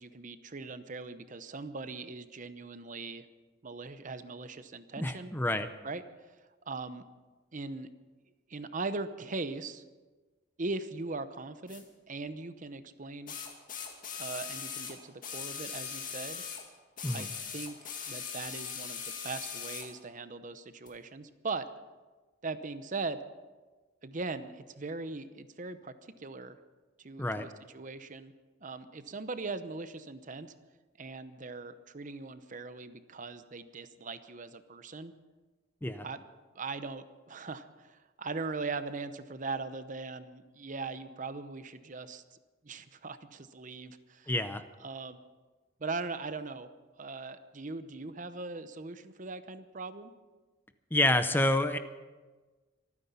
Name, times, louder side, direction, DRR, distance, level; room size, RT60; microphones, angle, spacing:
voice 1, 0.0-3.3 3.6-5.3 5.8-6.0 6.7-7.0 7.5-7.9 8.5-9.8 10.6-13.3 14.2-16.4 17.1-17.8 18.1-21.7 22.4-23.2 24.0-26.6 27.0-28.3 28.6-30.5 31.0-35.1 36.0-36.2 36.5-42.4 42.6-44.3 44.8-45.2 45.8-46.7 47.0-50.1, right 3 dB, 40° right, 12 dB, 0.8 m, -40 dB
voice 2, 5.0-5.7 17.0-17.3 27.2-27.5 35.8-36.1 44.3-44.6 50.9-51.8, left 1 dB, 10° left, 10 dB, 0.6 m, -28 dB
sound 1, 11.7-11.8 13.3-16.7 17.0-19.9 20.9-21.0, left 7 dB, 45° left, 2.2 m, -40 dB
25.0 x 9.7 x 5.6 m, 1.3 s
head